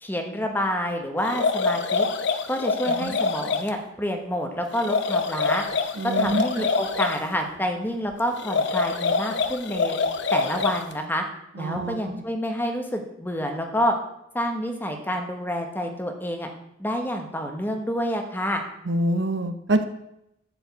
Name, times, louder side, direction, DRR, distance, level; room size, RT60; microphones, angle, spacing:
voice 1, 0.0-2.1 2.5-5.6 6.2-10.0 10.3-11.2 11.6-13.9 14.3-16.5 16.8-18.6, equal, 10° left, 3 dB, 1.3 m, -28 dB
sound 1, 1.2-3.7 4.7-7.2 8.4-10.9, left 4 dB, 60° left, 0.8 m, -25 dB
voice 2, 6.0-6.7 11.6-12.2 18.9-19.9, right 1 dB, 60° right, 7 dB, 0.9 m, -26 dB
12.0 x 5.4 x 8.3 m, 0.82 s
head